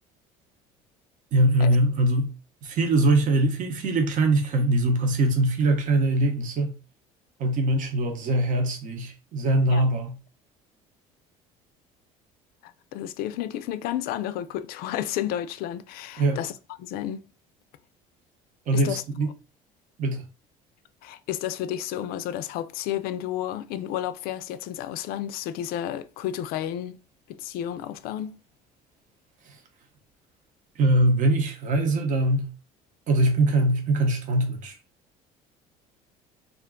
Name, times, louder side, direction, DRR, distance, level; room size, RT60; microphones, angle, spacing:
voice 1, 1.3-2.3 2.6-6.7 7.4-10.1 16.2-16.4 18.7-19.3 20.0-20.2 29.4-29.6 30.7-32.5 33.1-34.8, right 1 dB, 50° right, 0.8 m, -22 dB
voice 2, 12.6-16.5 16.8-17.2 18.7-19.0 21.0-27.0 27.3-28.4, left 11 dB, 65° left, 0.4 m, -31 dB
2.4 x 2.2 x 3.7 m
supercardioid pair, 90°, 16 cm